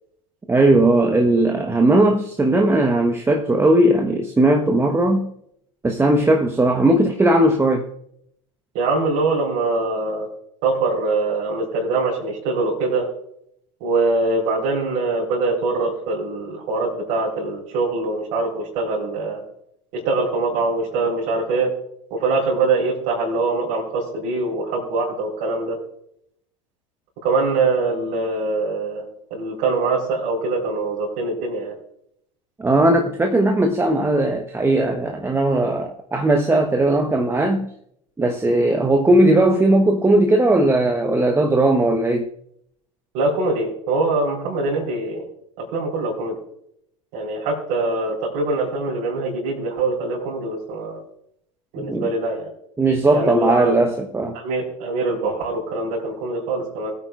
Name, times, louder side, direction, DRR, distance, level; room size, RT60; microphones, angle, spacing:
voice 1, 0.5-5.3 5.8-7.9 32.6-37.7 38.2-42.3 51.8-52.1 52.8-54.4, right 1 dB, 15° right, 1.2 m, -18 dB
voice 2, 8.7-10.3 10.6-13.1 13.8-19.4 19.9-21.7 22.1-25.8 27.2-29.0 29.3-31.7 43.1-45.2 45.6-46.3 47.1-51.0 51.7-52.5 53.1-53.9 54.3-56.9, right 3 dB, 65° right, 4.3 m, -23 dB
20.5 x 9.0 x 2.5 m
hypercardioid pair, 80°, 17 cm